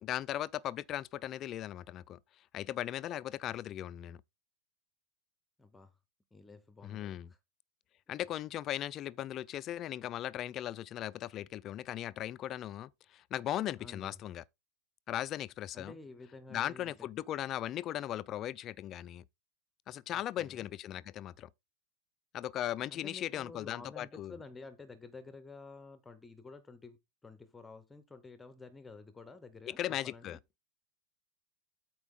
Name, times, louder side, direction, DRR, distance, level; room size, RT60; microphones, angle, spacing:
voice 1, 0.0-2.2 2.5-4.2 6.8-7.3 8.1-14.4 15.1-15.9 16.5-19.2 19.9-21.5 22.3-24.4 29.7-30.4, left 12 dB, 30° left, 0.4 m, -38 dB
voice 2, 5.6-5.9 6.3-7.2 8.1-8.2 13.8-14.2 15.7-17.1 20.1-20.7 22.9-30.4, left 3 dB, 10° left, 0.8 m, -51 dB
13.0 x 4.6 x 3.7 m
supercardioid pair, 155°, 0 cm